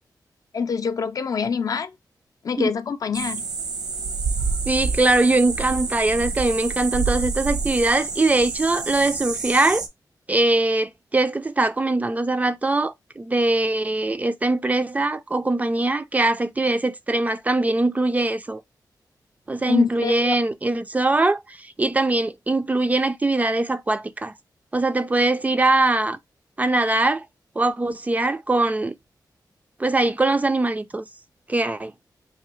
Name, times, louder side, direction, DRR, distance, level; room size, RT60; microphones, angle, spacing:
voice 1, 0.5-1.9 2.4-3.5 19.7-20.3, left 6 dB, 55° left, 0.4 m, -25 dB
sound 1, 3.1-9.9, right 4 dB, 75° right, 0.8 m, -28 dB
voice 2, 4.7-9.8 10.3-18.6 19.5-24.3 24.7-26.2 26.6-27.3 27.6-28.9 29.8-31.0 31.5-31.9, right 2 dB, 20° right, 0.3 m, -22 dB
3.7 x 2.9 x 3.1 m
wide cardioid pair, 115°, 7 cm